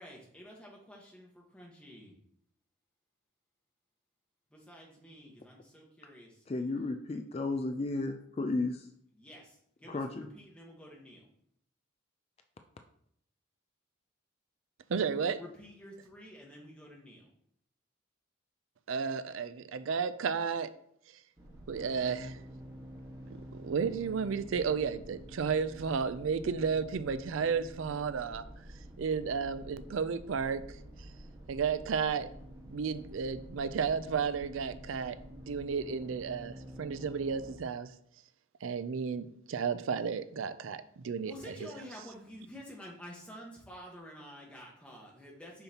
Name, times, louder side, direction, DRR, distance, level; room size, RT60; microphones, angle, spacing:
voice 1, 0.0-2.1 4.5-6.3 9.2-11.2 15.4-17.2 41.2-45.6, equal, 5° left, 1.3 m, -50 dB
voice 2, 6.5-8.9 9.9-10.3, left 2 dB, 30° left, 0.3 m, -33 dB
voice 3, 14.9-15.4 18.9-20.7 21.7-22.4 23.3-28.4 29.0-31.1 31.5-32.3 32.7-35.2 35.5-37.9 38.6-41.7, right 6 dB, 80° right, 0.4 m, -33 dB
sound 1, 21.4-37.6, equal, 20° right, 1.5 m, -48 dB
6.9 x 5.6 x 2.9 m
head